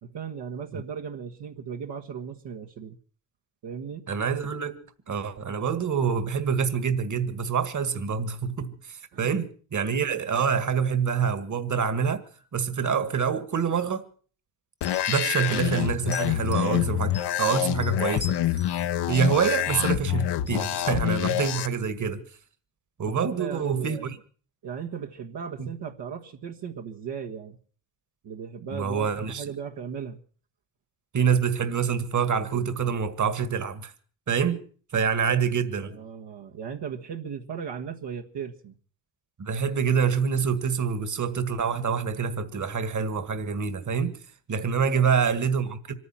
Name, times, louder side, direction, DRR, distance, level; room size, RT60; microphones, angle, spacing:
voice 1, 0.0-3.0 3.6-4.0 9.1-9.3 23.1-24.2 24.6-27.6 28.2-30.2 35.8-38.7 44.9-45.1, right 7 dB, 65° right, 1.5 m, -37 dB
voice 2, 4.1-4.7 5.1-12.2 12.5-14.1 15.1-18.4 19.1-22.2 23.0-24.2 25.6-25.7 28.7-29.4 31.1-33.9 34.3-34.6 34.9-36.0 39.4-44.2 44.5-45.9, right 6 dB, 40° right, 1.8 m, -26 dB
sound 1, 14.8-21.7, left 12 dB, 65° left, 0.9 m, -26 dB
sound 2, 14.8-15.5 16.0-16.7 17.1-18.9 19.2-20.0 20.5-20.6, left 5 dB, 25° left, 0.9 m, -43 dB
25.5 x 9.6 x 5.8 m
supercardioid pair, 65°, 44 cm